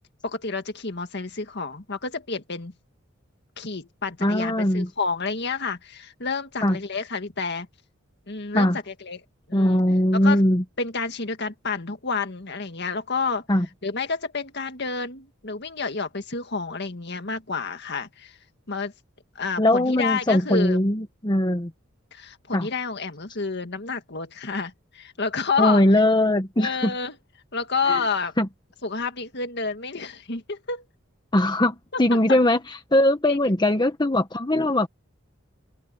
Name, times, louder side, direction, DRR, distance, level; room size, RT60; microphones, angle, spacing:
voice 1, 0.2-2.7 3.6-7.7 8.3-9.2 9.5-9.8 10.1-10.4 10.8-13.4 13.8-18.4 18.7-18.9 19.4-20.8 22.1-25.8 26.6-27.2 27.5-28.3 28.8-30.8 31.9-32.0 33.3-33.4, left 4 dB, 55° left, 1.9 m, -29 dB
voice 2, 4.2-4.9 6.6-6.8 8.5-8.8 9.5-10.6 13.5-13.7 19.6-21.7 22.5-22.7 25.6-26.9 27.9-28.0 28.4-28.5 31.3-34.9, left 1 dB, 20° left, 1.1 m, -21 dB
open air
head